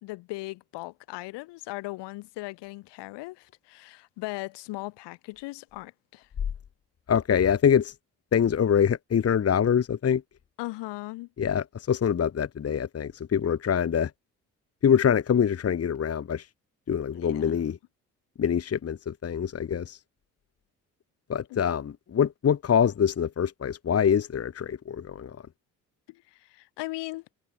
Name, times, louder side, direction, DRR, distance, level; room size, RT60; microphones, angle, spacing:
voice 1, 0.0-6.3 10.6-11.3 17.1-17.5 21.5-21.6 26.1-27.2, left 21 dB, 65° left, 2.6 m, -38 dB
voice 2, 7.1-7.9 8.3-10.2 11.4-14.1 14.8-16.5 16.9-17.8 18.4-20.0 21.3-25.4, left 8 dB, 35° left, 1.3 m, -24 dB
figure-of-eight pair, 45°, 45 cm